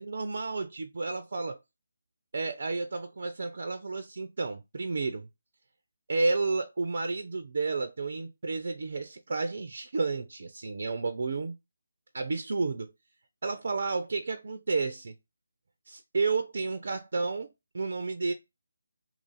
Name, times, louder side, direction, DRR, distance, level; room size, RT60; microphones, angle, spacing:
voice 1, 0.0-1.6 2.3-5.3 6.1-11.6 12.1-12.9 13.4-15.1 15.9-17.5 17.7-18.3, right 3 dB, 55° right, 0.4 m, -31 dB
2.9 x 2.4 x 3.8 m
figure-of-eight pair, 150°, 0 cm